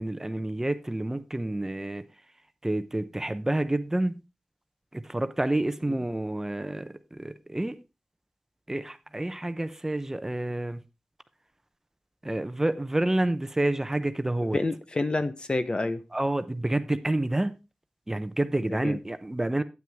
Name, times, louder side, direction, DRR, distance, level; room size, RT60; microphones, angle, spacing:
voice 1, 0.0-2.0 2.6-4.2 4.9-7.8 8.7-10.8 12.2-14.6 16.1-17.6 18.1-19.6, right 1 dB, 20° right, 0.7 m, -28 dB
voice 2, 14.4-16.0 18.7-19.0, left 2 dB, 40° left, 0.8 m, -29 dB
9.3 x 9.1 x 3.4 m
wide cardioid pair, 75°, 2 cm